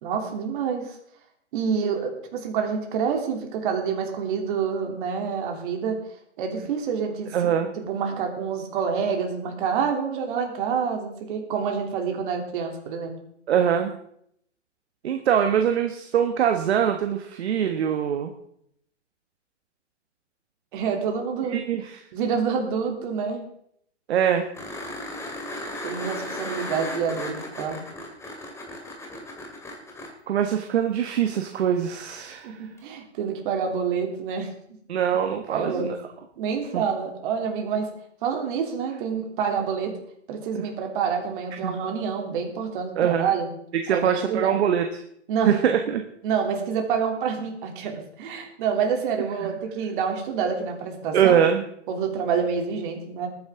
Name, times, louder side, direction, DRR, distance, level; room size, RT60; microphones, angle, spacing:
voice 1, 0.0-1.0 1.5-6.0 6.4-13.1 20.7-21.6 22.1-23.5 25.8-27.8 32.4-34.5 35.5-35.9 36.4-37.9 38.2-39.9 40.3-43.5 43.9-44.6 45.3-45.5 46.2-51.4 51.9-53.3, right 6 dB, 45° right, 3 dB, 3.2 m, -27 dB
voice 2, 7.3-7.7 13.5-13.9 15.0-18.3 21.5-22.0 24.1-24.5 30.3-32.6 34.9-36.0 36.7-36.8 40.5-40.6 41.6-41.7 43.0-43.3 43.8-44.8 45.4-46.0 49.4-49.5 51.1-51.6, right 8 dB, 60° right, 5 dB, 1.3 m, -23 dB
sound 1, 24.5-30.1 32.8-32.9, left 1 dB, 10° left, 2.6 m, -35 dB
19.5 x 9.7 x 3.8 m, 0.71 s
hypercardioid pair, 130°, 36 cm